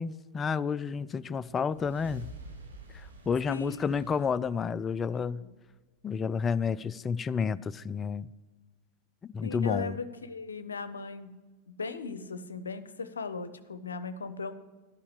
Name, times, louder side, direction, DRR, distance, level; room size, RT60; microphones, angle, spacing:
voice 1, 0.0-2.3 2.9-5.4 6.0-8.3 9.3-10.0, left 6 dB, 20° left, 0.3 m, -30 dB
sound 1, 1.4-5.8, equal, 75° right, 1.4 m, -49 dB
voice 2, 3.5-4.0 5.1-5.5 9.4-11.4 11.7-14.5, left 4 dB, 70° left, 0.6 m, -38 dB
12.0 x 5.7 x 8.1 m
figure-of-eight pair, 90°, 0 cm